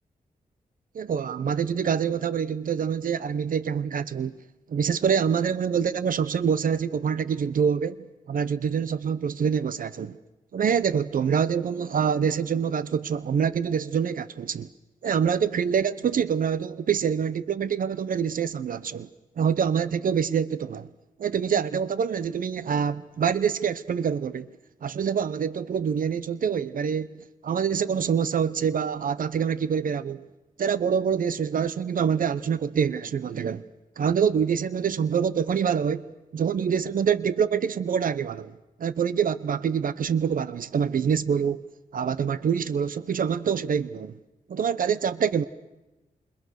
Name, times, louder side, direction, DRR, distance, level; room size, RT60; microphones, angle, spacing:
voice 1, 0.9-4.4 4.7-8.0 8.3-10.2 10.5-14.7 15.0-19.1 19.4-20.9 21.2-24.5 24.8-30.2 30.6-33.6 34.0-38.5 38.8-41.6 41.9-44.2 44.5-45.4, right 7 dB, 70° right, 0.9 m, -25 dB
28.5 x 28.5 x 6.5 m
wide cardioid pair, 95°, 15 cm